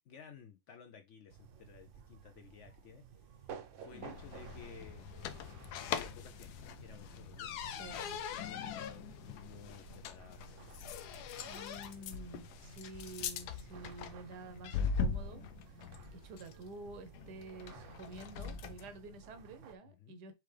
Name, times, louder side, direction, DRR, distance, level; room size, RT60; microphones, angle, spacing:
voice 1, 0.1-3.0 3.4-5.1 5.9-10.9 19.8-20.2, left 7 dB, 65° left, 0.8 m, -55 dB
sound 1, 1.3-19.8, right 7 dB, 65° right, 0.8 m, -55 dB
sound 2, 3.9-18.9, left 6 dB, 80° left, 1.1 m, -42 dB
voice 2, 7.7-8.1 11.5-15.4 16.1-20.3, right 2 dB, 85° right, 1.4 m, -49 dB
4.5 x 3.6 x 3.2 m
omnidirectional pair, 1.7 m